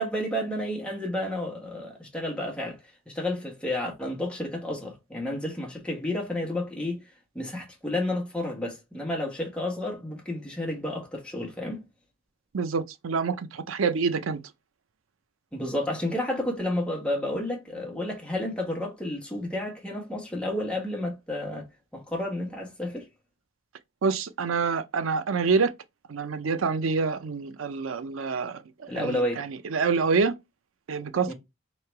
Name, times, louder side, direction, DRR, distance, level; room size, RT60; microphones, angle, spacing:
voice 1, 0.0-2.8 3.1-7.0 7.3-11.9 15.5-21.7 21.9-23.1 28.9-29.5 31.2-31.3, left 1 dB, 5° left, 1.2 m, -31 dB
voice 2, 12.5-14.4 24.0-25.7 26.1-30.3 30.9-31.3, right 5 dB, 90° right, 0.5 m, -27 dB
3.1 x 2.9 x 4.5 m
head